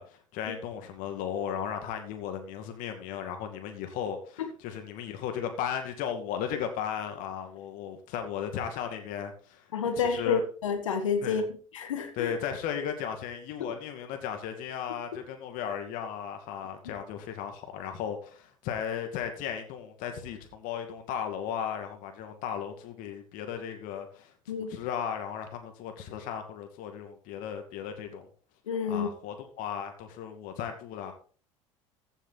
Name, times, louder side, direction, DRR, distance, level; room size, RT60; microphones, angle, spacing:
voice 1, 0.0-9.7 10.0-10.4 11.2-11.5 12.2-28.3 28.9-31.1, left 8 dB, 55° left, 2.4 m, -36 dB
voice 2, 9.7-11.4 11.7-12.3 13.6-13.7 24.5-24.7 28.7-29.1, left 5 dB, 80° left, 1.8 m, -29 dB
15.0 x 7.3 x 4.0 m
figure-of-eight pair, 65°, 16 cm